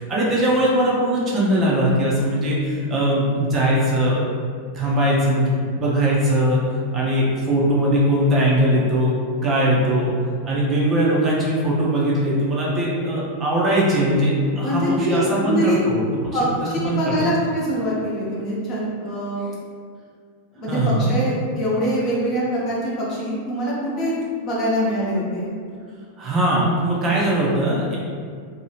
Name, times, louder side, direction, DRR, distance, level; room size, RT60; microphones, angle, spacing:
voice 1, 0.0-4.2 4.7-6.6 6.9-10.1 10.4-17.3 20.6-21.1 26.2-28.0, right 1 dB, 25° right, -5 dB, 0.6 m, -20 dB
voice 2, 14.6-15.8 16.3-19.5 20.6-24.2 24.4-25.5, equal, 35° left, -6 dB, 0.9 m, -24 dB
2.7 x 2.3 x 3.1 m, 2.1 s
figure-of-eight pair, 90°, 0 cm